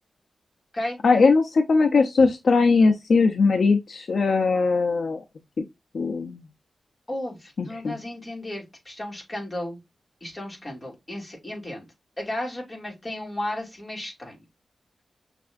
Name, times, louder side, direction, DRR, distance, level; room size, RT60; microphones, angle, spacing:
voice 1, 1.0-5.2 5.9-6.4 7.6-8.0, left 4 dB, 60° left, 0.7 m, -20 dB
voice 2, 7.1-9.8 10.2-11.9 12.2-14.4, left 1 dB, 20° left, 2.5 m, -34 dB
5.9 x 3.3 x 2.5 m
wide cardioid pair, 140°, 0 cm